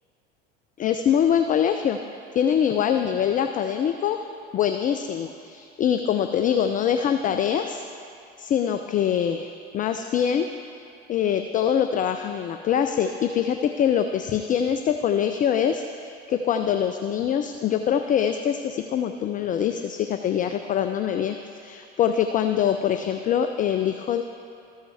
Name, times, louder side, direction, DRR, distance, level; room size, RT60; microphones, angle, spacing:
voice 1, 0.8-2.0 2.3-4.3 4.5-7.8 8.4-10.5 11.1-24.2, left 9 dB, 25° left, 7 dB, 0.3 m, -24 dB
14.0 x 5.5 x 3.3 m, 2.6 s
hypercardioid pair, 70°, 33 cm